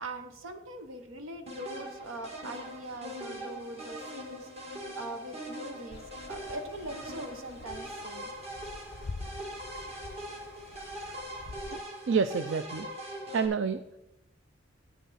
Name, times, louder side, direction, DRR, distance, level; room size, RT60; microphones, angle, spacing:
voice 1, 0.0-6.0 6.3-8.3 11.0-11.2, right 2 dB, 90° right, 7 dB, 1.0 m, -42 dB
sound 1, 1.5-13.5, equal, 30° right, 1.7 m, -42 dB
sound 2, 5.9-11.8, left 3 dB, 50° left, 0.5 m, -46 dB
voice 2, 12.1-12.9 13.3-13.8, right 5 dB, 65° right, 11 dB, 0.4 m, -28 dB
9.4 x 9.4 x 4.1 m, 0.89 s
head